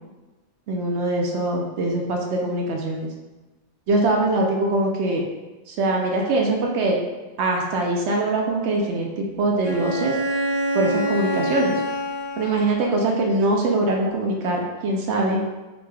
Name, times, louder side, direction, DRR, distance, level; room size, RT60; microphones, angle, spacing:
voice 1, 0.7-3.1 3.9-5.2 5.7-7.0 7.4-10.2 10.7-11.8 12.4-15.4, right 2 dB, 90° right, 0 dB, 0.9 m, -22 dB
Bowed string instrument, 9.6-13.1, equal, 55° right, 1.5 m, -26 dB
4.7 x 3.9 x 2.2 m, 1.1 s
omnidirectional pair, 1.1 m